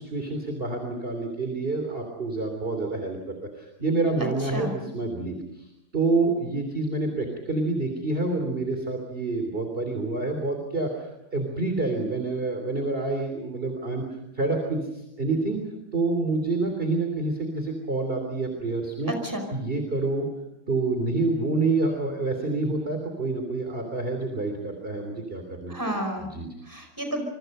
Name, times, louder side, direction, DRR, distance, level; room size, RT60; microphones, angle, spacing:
voice 1, 0.0-3.2 3.6-5.7 5.9-11.1 11.3-14.0 14.4-14.8 15.2-15.6 15.9-19.1 19.5-20.3 20.7-25.7 26.2-26.5, right 3 dB, 25° right, 4 dB, 3.2 m, -27 dB
voice 2, 19.1-19.5 25.7-26.3 26.7-27.2, right 1 dB, 10° right, 4 dB, 5.0 m, -31 dB
27.0 x 24.0 x 5.5 m, 0.89 s
omnidirectional pair, 2.4 m